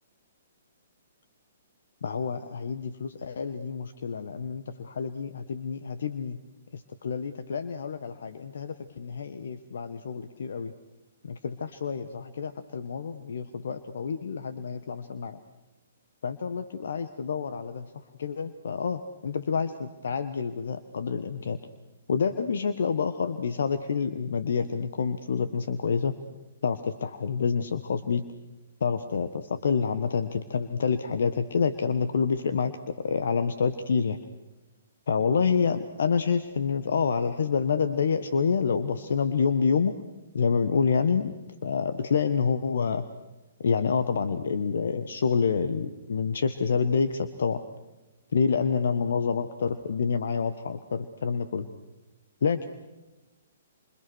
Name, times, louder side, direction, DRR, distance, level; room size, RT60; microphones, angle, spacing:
voice 1, 2.0-6.4 6.7-10.7 11.2-15.4 16.2-21.6 22.1-26.1 26.6-28.2 28.8-34.2 35.1-39.9 40.3-41.3 41.6-43.0 43.6-47.6 48.3-51.7 52.4-52.7, left 5 dB, 65° left, 10 dB, 1.5 m, -28 dB
28.5 x 26.0 x 6.4 m, 1.1 s
figure-of-eight pair, 125°, 0 cm